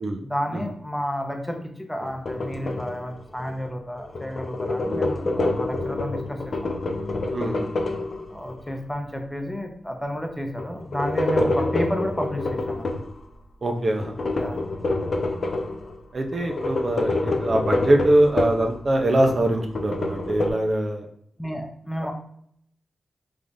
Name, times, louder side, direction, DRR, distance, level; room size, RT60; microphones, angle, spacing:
voice 1, 0.2-6.7 8.3-13.0 14.4-14.6 21.4-22.1, equal, 5° left, 3 dB, 0.7 m, -31 dB
sound 1, 2.0-3.7 4.0-8.7 10.6-13.1 14.0-16.0 16.3-18.7 19.1-20.5, left 2 dB, 55° left, 0.5 m, -27 dB
voice 2, 4.8-5.4 7.3-7.7 11.4-11.5 13.6-14.1 16.1-21.1 22.0-22.1, right 1 dB, 45° right, 3 dB, 0.6 m, -23 dB
3.7 x 3.3 x 2.6 m, 0.67 s
cardioid pair, 80°, 0 cm